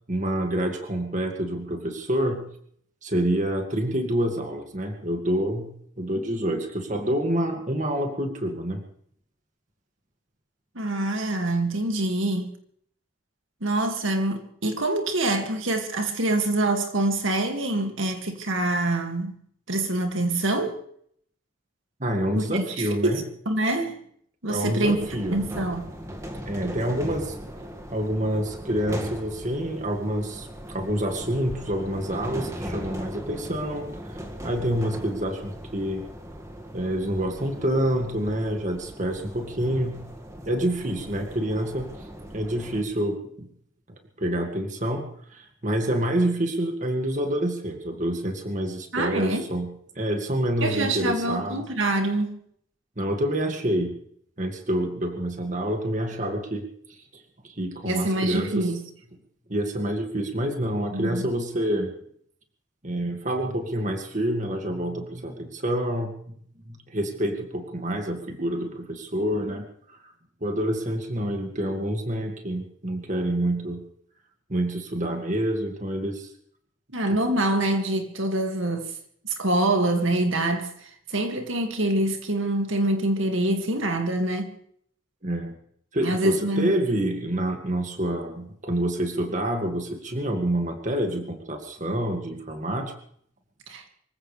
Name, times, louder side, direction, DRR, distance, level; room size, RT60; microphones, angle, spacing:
voice 1, 0.1-2.5 3.0-8.8 22.0-23.2 24.5-25.4 26.5-27.3 27.9-33.9 34.4-36.0 36.7-40.0 40.5-41.9 42.3-43.5 44.2-51.6 53.0-53.9 54.4-56.6 56.9-57.0 57.4-58.6 59.5-61.9 62.8-66.2 66.7-69.6 70.4-73.8 74.5-76.3 77.1-77.2 85.2-85.6 85.9-92.9, right 1 dB, 35° right, 2.1 m, -27 dB
voice 2, 10.8-12.5 13.6-19.4 19.7-20.8 22.4-24.0 24.4-25.0 25.3-25.8 48.9-49.5 50.6-52.4 57.8-58.8 60.9-61.2 76.9-78.9 79.2-84.5 86.0-86.7 93.7-93.8, right 1 dB, 70° right, 2.2 m, -25 dB
sound 1, 24.8-42.8, equal, 15° right, 1.9 m, -38 dB
25.0 x 15.5 x 3.4 m
head